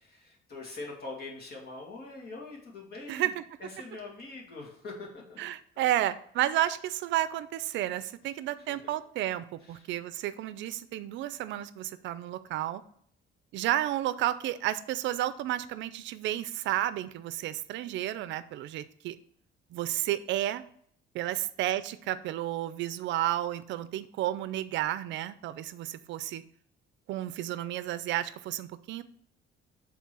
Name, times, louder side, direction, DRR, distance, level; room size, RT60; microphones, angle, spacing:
voice 1, 0.0-3.3 3.6-5.4 8.6-8.9 9.6-9.9 21.3-21.4, left 3 dB, 50° left, -1 dB, 2.2 m, -43 dB
voice 2, 3.1-3.4 5.4-12.8 13.5-19.2 19.7-20.6 21.1-26.4 27.1-29.0, right 13 dB, 65° right, 14 dB, 0.5 m, -32 dB
7.1 x 3.7 x 6.1 m, 0.63 s
cardioid pair, 170°, 20 cm